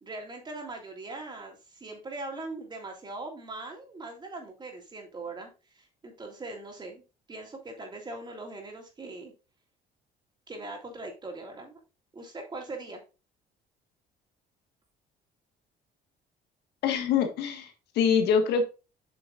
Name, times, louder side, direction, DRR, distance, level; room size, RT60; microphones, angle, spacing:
voice 1, 0.0-7.0 7.3-9.3 10.5-11.8 12.1-13.0, right 2 dB, 25° right, 1 dB, 3.1 m, -41 dB
voice 2, 16.8-18.6, left 7 dB, 80° left, 6 dB, 1.6 m, -25 dB
8.4 x 6.3 x 2.5 m, 0.30 s
cardioid pair, 110°, 17 cm